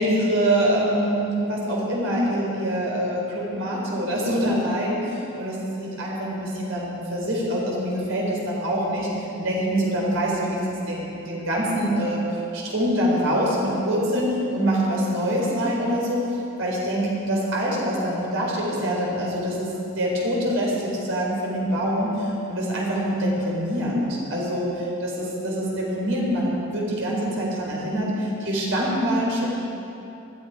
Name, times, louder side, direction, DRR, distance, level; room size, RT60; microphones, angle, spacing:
voice 1, 0.0-9.1 9.4-12.2 12.5-16.2 16.6-19.7 20.0-22.1 22.5-24.7 25.0-29.4, equal, 85° right, -4 dB, 4.3 m, -25 dB
19.5 x 12.5 x 5.0 m, 2.9 s
head